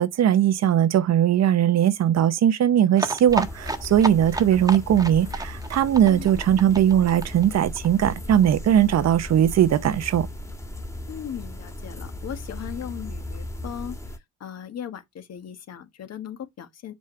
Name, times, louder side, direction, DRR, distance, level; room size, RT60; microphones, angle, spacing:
voice 1, 0.0-10.3, right 10 dB, 60° right, 0.8 m, -20 dB
sound 1, 2.9-8.5 8.8-8.9 9.1-9.2 9.4-9.5, right 2 dB, 10° right, 1.4 m, -32 dB
sound 2, 3.3-14.2, left 1 dB, 10° left, 1.6 m, -36 dB
voice 2, 11.1-16.9, left 9 dB, 60° left, 1.4 m, -38 dB
6.3 x 5.3 x 3.2 m
cardioid pair, 90°, 30 cm